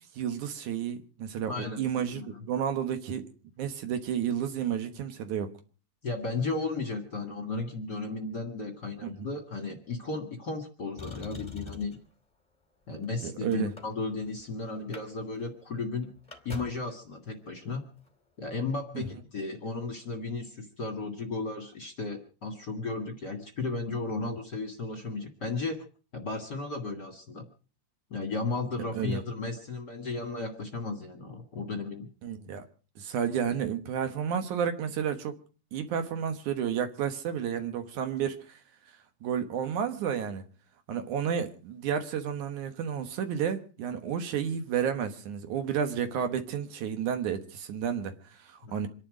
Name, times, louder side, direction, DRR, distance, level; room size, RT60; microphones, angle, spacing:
voice 1, 0.1-3.3 3.6-5.5 9.0-9.3 13.2-13.7 18.9-19.0 24.2-24.3 28.9-29.2 32.2-32.7 33.0-35.4 35.7-38.6 39.2-40.4 40.9-48.9, right 8 dB, 70° right, 2.6 m, -31 dB
voice 2, 1.5-1.8 2.1-2.4 6.0-12.0 12.9-16.1 16.4-17.8 18.4-25.8 26.1-27.5 28.1-32.1 48.6-48.7, left 3 dB, 35° left, 2.1 m, -34 dB
Motor vehicle (road), 11.0-12.1 12.9-14.4 14.7-15.1 15.3-15.4 15.8-16.9 18.0-18.1, left 5 dB, 10° left, 2.2 m, -44 dB
26.5 x 11.0 x 5.0 m
omnidirectional pair, 3.8 m